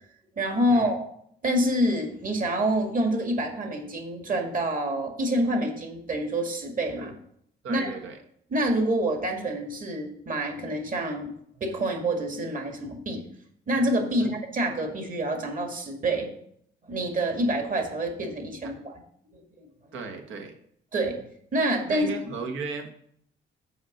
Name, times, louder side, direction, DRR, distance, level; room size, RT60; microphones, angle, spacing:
voice 1, 0.4-1.1 1.4-7.1 7.7-7.9 8.5-11.3 11.6-13.3 13.7-16.3 16.9-18.9 19.3-19.7 20.9-21.2 21.5-22.1, right 1 dB, 40° right, 3 dB, 2.0 m, -27 dB
voice 2, 7.6-8.2 14.2-14.4 19.9-20.5 21.9-22.9, right 4 dB, 80° right, 4 dB, 1.4 m, -35 dB
7.1 x 5.2 x 6.6 m, 0.67 s
cardioid pair, 90°, 20 cm